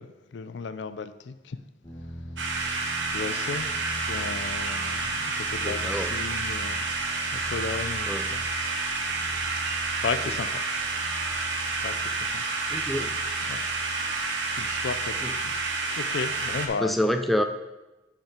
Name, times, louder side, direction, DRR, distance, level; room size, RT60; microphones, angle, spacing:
voice 1, 0.0-1.6 3.1-6.9 7.3-8.4 8.7-9.1 10.0-11.1 11.8-12.4 13.0-13.1 13.5-14.2 14.5-15.5 15.8-16.9, left 5 dB, 75° left, 0.4 m, -35 dB
sound 1, 1.8-16.6, equal, 25° left, 1.2 m, -42 dB
sound 2, 2.4-16.7, right 3 dB, 85° right, 1.0 m, -29 dB
voice 2, 5.6-6.1 8.1-8.2 12.7-13.1 15.2-15.3 16.8-17.4, equal, ahead, 0.4 m, -27 dB
8.0 x 5.1 x 4.4 m
head